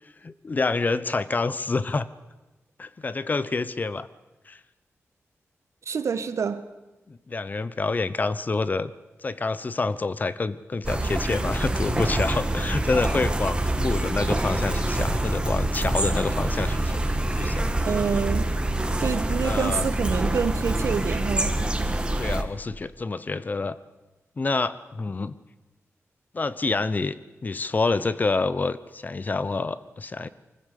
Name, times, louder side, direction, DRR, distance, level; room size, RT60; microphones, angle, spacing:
voice 1, 0.2-2.1 2.8-4.1 4.5-4.6 7.1-8.9 9.2-17.0 17.4-17.7 19.4-19.9 22.2-23.8 24.4-25.3 26.3-27.2 27.4-30.3, left 3 dB, 35° left, 0.9 m, -27 dB
voice 2, 5.9-6.6 17.8-18.5 19.0-21.6, right 6 dB, 70° right, 1.3 m, -27 dB
sound 1, 10.8-22.4, right 1 dB, 20° right, 1.7 m, -26 dB
24.5 x 15.5 x 8.4 m
wide cardioid pair, 135°, 5 cm